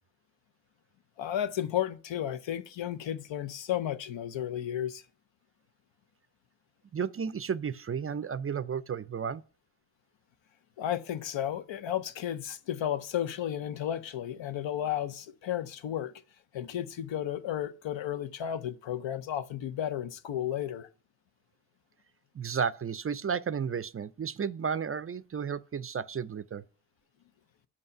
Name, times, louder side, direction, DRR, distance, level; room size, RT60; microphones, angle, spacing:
voice 1, 1.2-5.0 10.8-16.1 16.5-20.9, left 10 dB, 80° left, 0.6 m, -33 dB
voice 2, 6.9-9.4 22.3-26.6, right 6 dB, 35° right, 0.4 m, -33 dB
5.4 x 5.3 x 6.5 m
supercardioid pair, 40°, 44 cm